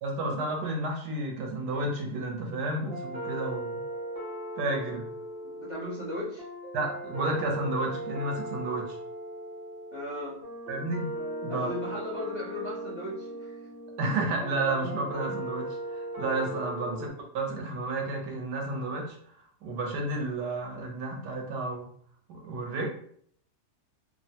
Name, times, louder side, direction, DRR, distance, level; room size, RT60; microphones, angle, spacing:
voice 1, 0.0-3.8 4.6-5.1 6.7-9.0 10.7-11.1 11.4-11.7 14.0-17.1 17.3-19.2 19.6-21.9 22.3-22.9, right 2 dB, 80° right, 1 dB, 1.3 m, -31 dB
sound 1, 2.8-17.1, right 1 dB, 35° right, 0.6 m, -38 dB
voice 2, 5.4-6.4 9.9-10.4 11.5-13.6 16.8-17.1, left 1 dB, 60° left, -6 dB, 0.6 m, -37 dB
3.1 x 2.1 x 2.7 m, 0.62 s
omnidirectional pair, 1.8 m